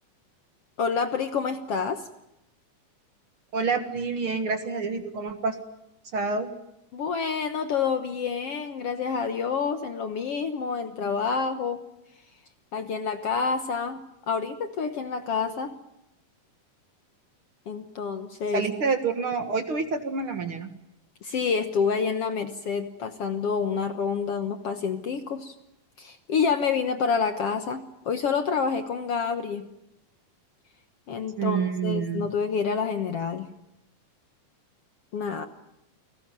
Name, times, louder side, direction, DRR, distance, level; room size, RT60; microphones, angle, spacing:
voice 1, 0.8-2.1 6.9-11.8 12.7-15.7 17.7-18.7 21.2-25.5 26.0-29.7 31.1-33.5 35.1-35.5, left 5 dB, 60° left, 8 dB, 1.8 m, -28 dB
voice 2, 3.5-5.6 6.1-6.5 18.5-20.7 31.4-32.3, right 5 dB, 45° right, 8 dB, 2.2 m, -27 dB
29.5 x 20.0 x 9.2 m, 0.85 s
omnidirectional pair, 3.7 m